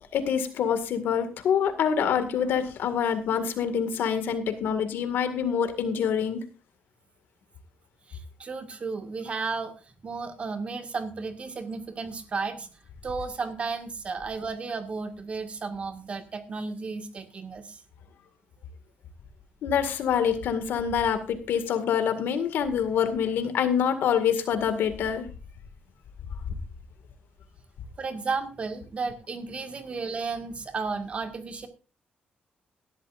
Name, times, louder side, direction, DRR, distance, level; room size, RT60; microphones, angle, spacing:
voice 1, 0.1-6.4 19.6-25.3, left 7 dB, 90° left, 9 dB, 2.0 m, -26 dB
voice 2, 8.1-9.7 10.0-12.7 13.0-17.8 28.0-31.7, right 4 dB, 35° right, 7 dB, 1.9 m, -33 dB
18.0 x 12.5 x 2.6 m, 0.32 s
cardioid pair, 140°, 3 cm